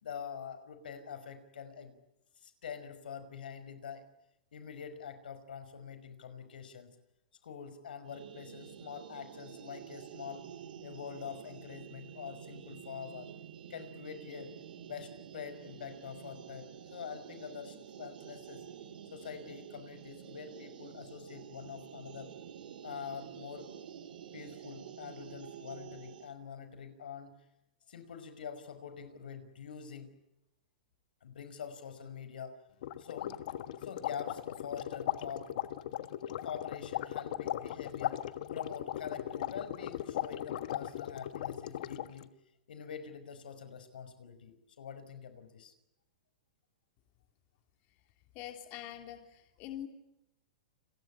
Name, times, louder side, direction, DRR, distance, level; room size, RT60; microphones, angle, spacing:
voice 1, 0.0-2.0 2.4-4.0 4.5-7.0 7.4-10.5 10.8-13.3 13.7-14.5 14.9-18.6 19.1-22.3 22.8-23.7 24.3-27.4 27.9-30.1 31.2-32.6 33.0-33.3 33.8-35.5 36.4-38.2 38.5-42.3 42.7-45.7, left 7 dB, 90° left, 11 dB, 5.3 m, -45 dB
sound 1, 8.1-26.3, right 9 dB, 75° right, 3.0 m, -49 dB
sound 2, 32.8-42.2, left 12 dB, 60° left, 1.4 m, -38 dB
voice 2, 48.3-49.9, left 12 dB, 35° left, 5 dB, 3.1 m, -44 dB
30.0 x 22.5 x 8.9 m, 0.87 s
hypercardioid pair, 150°, 5 cm